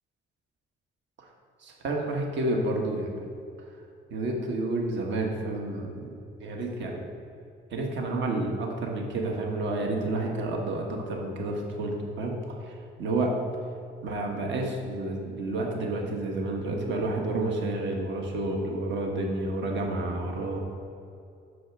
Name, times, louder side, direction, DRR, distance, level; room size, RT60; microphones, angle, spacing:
voice 1, 1.6-3.3 4.1-6.1 6.4-7.0 7.7-13.3 14.0-20.6, right 2 dB, 65° right, 1 dB, 1.3 m, -30 dB
6.4 x 5.7 x 5.9 m, 2.6 s
cardioid pair, 90°, 20 cm